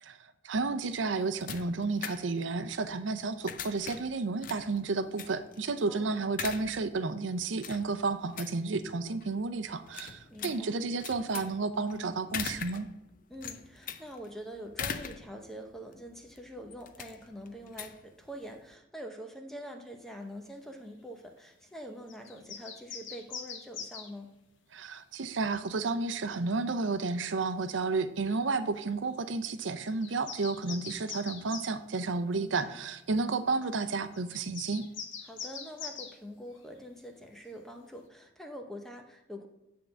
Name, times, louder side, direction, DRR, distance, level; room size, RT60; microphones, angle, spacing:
voice 1, 0.0-12.9 24.7-34.9, right 3 dB, 80° right, 12 dB, 0.6 m, -32 dB
sound 1, 0.8-18.7, left 7 dB, 45° left, 0.5 m, -43 dB
voice 2, 5.9-6.3 10.3-10.8 13.3-24.3 32.3-32.8 35.2-39.5, equal, ahead, 3 dB, 0.7 m, -45 dB
sound 2, 22.1-24.1 26.9-27.0 27.6-27.8 28.3-28.5 29.4-29.5 29.8-31.7 32.8-32.9 34.1-36.1, left 6 dB, 85° left, 1.1 m, -43 dB
9.2 x 3.7 x 6.8 m, 0.85 s
head